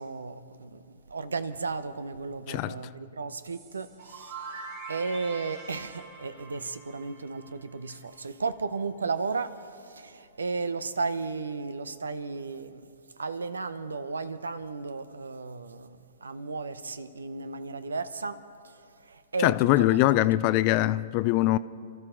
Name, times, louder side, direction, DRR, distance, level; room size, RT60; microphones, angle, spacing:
voice 1, 0.0-20.3, right 4 dB, 80° right, 0.8 m, -34 dB
voice 2, 2.5-2.8 19.4-21.6, left 16 dB, 40° left, 0.5 m, -22 dB
sound 1, 3.4-8.2, right 4 dB, 50° right, 3.3 m, -44 dB
27.5 x 13.5 x 3.8 m
figure-of-eight pair, 115°, 0 cm